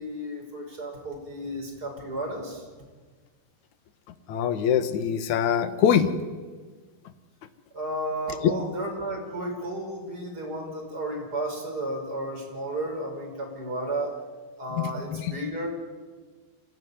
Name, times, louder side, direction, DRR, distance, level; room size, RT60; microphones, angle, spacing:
voice 1, 0.0-2.7 7.7-14.1 14.6-15.7, right 1 dB, 20° right, 1 dB, 5.7 m, -33 dB
voice 2, 4.3-6.1 8.4-8.5 14.8-15.3, left 8 dB, 60° left, 10 dB, 2.1 m, -23 dB
26.0 x 15.5 x 9.7 m, 1.4 s
omnidirectional pair, 4.9 m